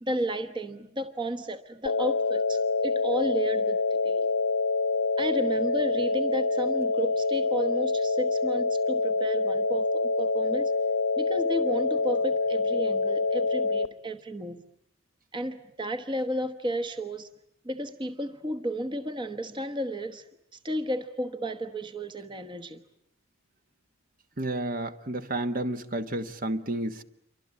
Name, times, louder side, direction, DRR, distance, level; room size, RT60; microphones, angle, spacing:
voice 1, 0.0-4.3 5.2-10.7 11.2-14.6 15.3-17.3 17.6-20.3 20.5-22.8, equal, 25° right, 1.2 m, -33 dB
sound 1, 1.9-13.9, left 3 dB, 90° left, 1.1 m, -26 dB
voice 2, 24.4-27.0, right 1 dB, 45° right, 1.3 m, -31 dB
28.5 x 24.5 x 8.4 m
head